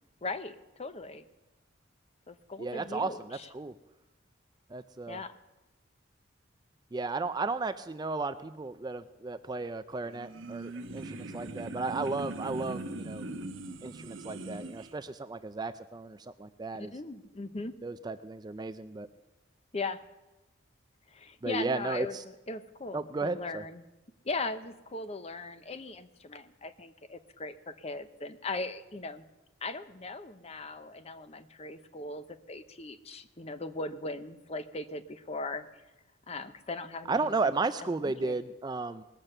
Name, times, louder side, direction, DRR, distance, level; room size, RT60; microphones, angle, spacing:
voice 1, 0.2-1.2 2.3-3.5 5.1-5.3 16.8-17.7 19.7-20.0 21.1-22.2 22.5-23.8 24.2-29.2 29.6-35.6 36.3-37.1 37.4-37.5 37.9-38.4, left 3 dB, 30° left, 11 dB, 0.7 m, -39 dB
voice 2, 2.6-3.7 4.7-5.2 6.9-13.3 13.8-16.9 17.8-19.1 21.4-22.2 22.9-23.6 37.1-39.0, right 3 dB, 20° right, 11 dB, 0.4 m, -34 dB
sound 1, 10.0-14.9, right 2 dB, 85° right, 1.0 m, -40 dB
20.0 x 7.4 x 6.6 m, 1.0 s
head